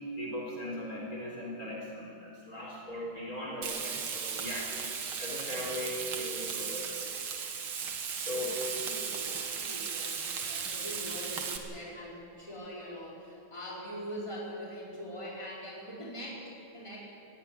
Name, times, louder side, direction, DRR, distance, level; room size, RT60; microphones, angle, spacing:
voice 1, 0.1-4.7 4.9-7.0 8.2-8.6 10.5-10.7, left 1 dB, 40° left, -3 dB, 4.6 m, -39 dB
Frying (food), 3.6-11.6, right 6 dB, 75° right, 2.4 m, -36 dB
voice 2, 8.3-17.1, equal, 15° left, -5 dB, 4.7 m, -43 dB
18.0 x 17.0 x 10.0 m, 2.7 s
omnidirectional pair, 2.3 m